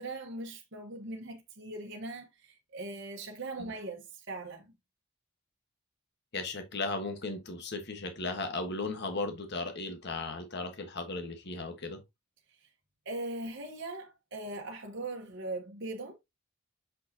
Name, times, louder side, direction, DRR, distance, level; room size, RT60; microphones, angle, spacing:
voice 1, 0.0-4.7 13.1-16.1, right 2 dB, 55° right, 1.1 m, -40 dB
voice 2, 6.3-12.0, left 3 dB, 50° left, 1.2 m, -36 dB
6.4 x 5.3 x 2.7 m
head